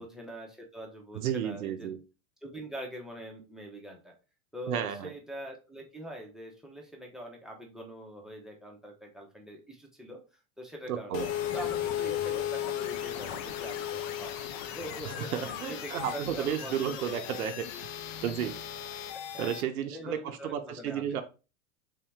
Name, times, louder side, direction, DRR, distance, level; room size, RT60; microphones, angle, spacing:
voice 1, 0.0-1.9 2.4-4.1 4.5-10.2 10.6-11.2 11.5-14.4 14.7-17.1 19.3-19.5 19.9-21.2, right 1 dB, ahead, 1 dB, 0.8 m, -43 dB
voice 2, 1.1-2.0 4.7-5.1 10.9-11.3 15.0-17.7 18.2-18.6 19.4-21.2, right 9 dB, 90° right, 8 dB, 0.6 m, -33 dB
sound 1, 11.1-19.6, left 11 dB, 40° left, 0.5 m, -36 dB
3.5 x 2.8 x 3.4 m, 0.32 s
hypercardioid pair, 110°, 42 cm